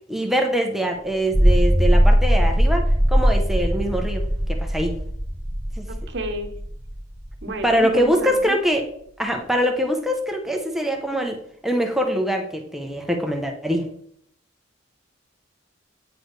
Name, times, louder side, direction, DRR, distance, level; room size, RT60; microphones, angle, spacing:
voice 1, 0.1-2.8 3.1-5.0 5.8-5.9 7.5-8.8 9.2-11.4 11.6-13.9, equal, ahead, 2 dB, 0.6 m, -23 dB
sound 1, 1.1-7.6, equal, 15° left, 1.8 m, -20 dB
voice 2, 5.9-6.5 7.4-8.5, right 1 dB, 55° right, 5 dB, 1.0 m, -30 dB
9.0 x 4.7 x 3.1 m, 0.68 s
head